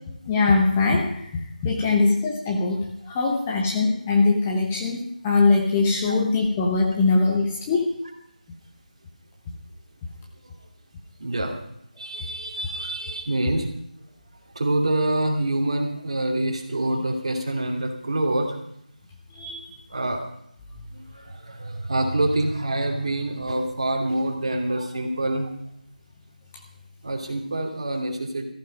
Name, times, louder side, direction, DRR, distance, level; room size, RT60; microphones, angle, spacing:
voice 1, 0.3-1.3 1.6-8.0 19.3-19.6, left 3 dB, 10° left, -1 dB, 1.0 m, -22 dB
voice 2, 11.2-11.5 12.0-13.7 14.5-18.6 19.9-20.2 20.9-25.5 27.0-28.4, right 1 dB, 40° right, 3 dB, 2.7 m, -26 dB
15.5 x 14.0 x 5.2 m, 0.73 s
figure-of-eight pair, 160°, 5 cm